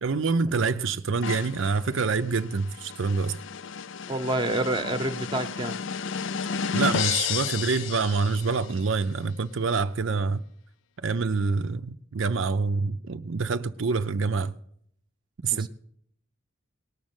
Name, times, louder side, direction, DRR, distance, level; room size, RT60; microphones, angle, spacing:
voice 1, 0.0-3.4 6.7-10.4 11.0-14.5 15.4-15.7, right 4 dB, 65° right, 0.5 m, -26 dB
sound 1, 1.2-8.8, left 6 dB, 65° left, 0.5 m, -32 dB
voice 2, 4.1-5.8 15.5-15.7, right 2 dB, 20° right, 0.9 m, -28 dB
19.0 x 6.4 x 8.9 m
head